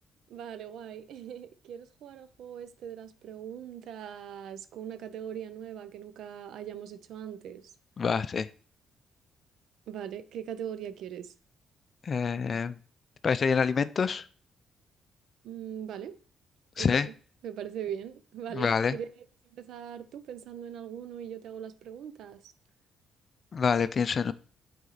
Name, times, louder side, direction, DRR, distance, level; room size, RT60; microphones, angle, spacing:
voice 1, 0.3-7.7 9.9-11.3 15.4-16.2 16.8-17.1 17.4-19.1 19.5-22.5, right 9 dB, 75° right, 0.6 m, -40 dB
voice 2, 8.0-8.5 12.0-12.8 13.2-14.2 16.8-17.1 18.5-19.0 23.5-24.3, left 6 dB, 45° left, 0.5 m, -26 dB
8.1 x 4.3 x 4.0 m
cardioid pair, 90°, 0 cm